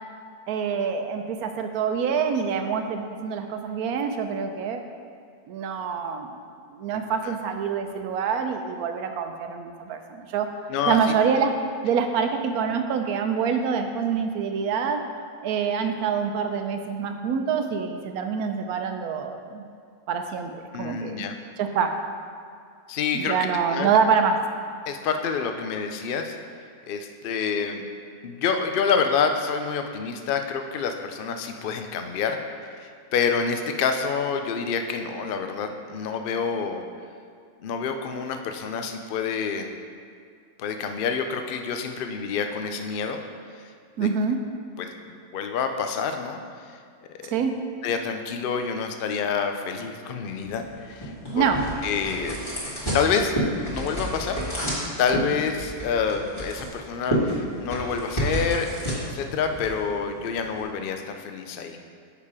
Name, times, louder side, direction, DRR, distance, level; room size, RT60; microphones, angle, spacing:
voice 1, 0.5-4.8 5.5-6.4 6.7-10.5 10.9-11.5 11.8-15.0 15.4-19.6 20.1-20.5 20.8-21.2 21.6-21.9 23.1-24.4 44.0-44.4 47.2-47.5 51.3-51.6, right 6 dB, 75° right, 6 dB, 1.1 m, -26 dB
voice 2, 10.7-11.1 20.7-21.3 22.9-23.3 23.7-23.9 24.9-26.3 26.9-27.8 28.2-36.8 37.6-39.7 40.6-43.2 44.0-44.1 44.8-44.9 45.3-46.4 47.2-47.4 47.8-51.5 51.8-52.4 52.9-53.3 53.7-54.4 55.0-61.8, left 6 dB, 85° left, 5 dB, 0.4 m, -27 dB
sound 1, 50.4-60.6, right 1 dB, 20° left, 1.7 m, -31 dB
6.7 x 5.5 x 4.8 m, 2.2 s
omnidirectional pair, 1.6 m